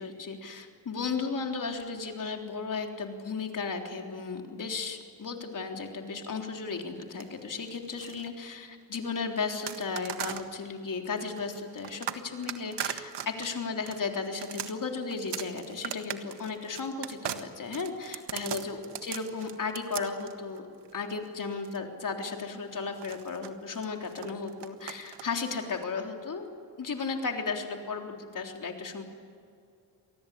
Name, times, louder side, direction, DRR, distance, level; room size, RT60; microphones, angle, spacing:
voice 1, 0.0-20.7 20.9-26.5 26.8-29.0, left 4 dB, 50° left, 3 dB, 3.7 m, -35 dB
sound 1, 7.0-8.3 9.7-10.5 11.2-21.8 22.9-25.8, right 10 dB, 75° right, 1.6 m, -39 dB
27.5 x 19.0 x 8.4 m, 2.4 s
cardioid pair, 75°, 42 cm